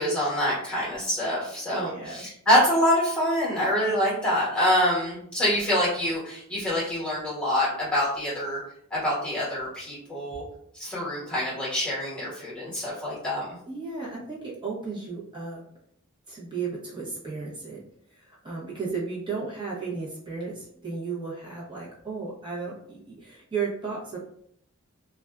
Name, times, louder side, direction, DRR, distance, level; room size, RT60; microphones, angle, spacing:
voice 1, 0.0-8.6 8.9-10.4 10.8-13.5, equal, 5° left, -8 dB, 1.1 m, -25 dB
voice 2, 1.7-2.2 3.8-3.9 10.1-10.2 13.7-15.6 16.3-17.8 18.2-24.2, right 4 dB, 20° right, -6 dB, 0.8 m, -34 dB
2.5 x 2.2 x 2.3 m, 0.69 s
head